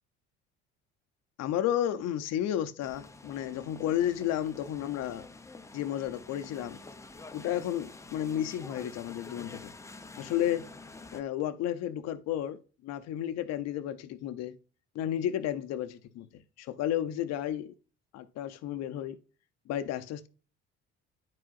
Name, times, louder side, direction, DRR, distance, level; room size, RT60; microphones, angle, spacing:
voice 1, 1.4-5.3 5.7-6.8 7.3-9.7 10.2-10.7 11.1-14.5 14.9-16.3 16.6-17.7 18.1-19.2 19.7-20.3, left 11 dB, 60° left, 0.6 m, -32 dB
sound 1, 2.8-11.2, left 3 dB, 10° left, 0.6 m, -48 dB
9.6 x 4.7 x 2.4 m
supercardioid pair, 75°, 30 cm